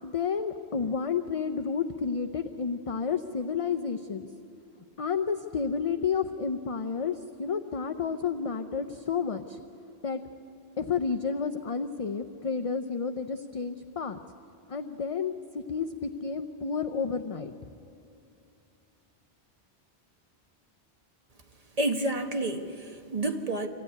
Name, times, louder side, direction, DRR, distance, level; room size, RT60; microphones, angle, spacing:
voice 1, 0.0-4.3 5.0-9.6 10.0-10.2 10.8-14.2 14.7-17.7, left 6 dB, 40° left, 8 dB, 0.6 m, -31 dB
voice 2, 21.8-23.7, right 2 dB, 35° right, 4 dB, 1.6 m, -29 dB
25.5 x 15.5 x 9.7 m, 2.7 s
omnidirectional pair, 1.1 m